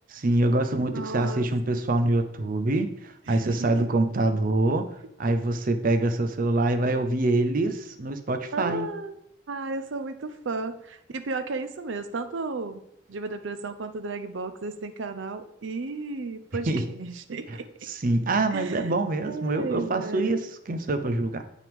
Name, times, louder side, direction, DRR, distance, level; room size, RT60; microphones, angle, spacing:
voice 1, 0.1-4.9 5.2-8.9 16.7-16.8 17.5-17.6 17.9-21.4, right 2 dB, 50° right, 9 dB, 0.6 m, -25 dB
voice 2, 0.9-1.5 3.3-3.9 8.5-9.2 9.5-17.7 18.5-18.9 19.3-20.4, right 3 dB, 90° right, 9 dB, 0.6 m, -34 dB
7.7 x 5.8 x 3.5 m, 0.78 s
head